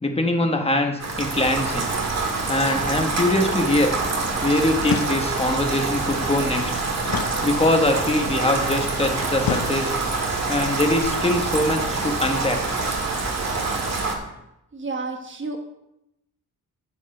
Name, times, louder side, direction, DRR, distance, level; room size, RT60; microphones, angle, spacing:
voice 1, 0.0-1.9 2.5-3.9 4.4-6.7 7.4-9.9 10.5-12.8, left 1 dB, 15° left, 4 dB, 1.2 m, -22 dB
Rain, 1.0-14.1, right 3 dB, 50° right, 1.9 m, -26 dB
sound 1, 4.8-5.6 7.1-8.0 9.4-10.3, left 8 dB, 90° left, 0.8 m, -30 dB
voice 2, 14.7-15.6, right 3 dB, 35° right, 4 dB, 1.3 m, -30 dB
10.0 x 7.6 x 5.5 m, 0.87 s
wide cardioid pair, 160°, 34 cm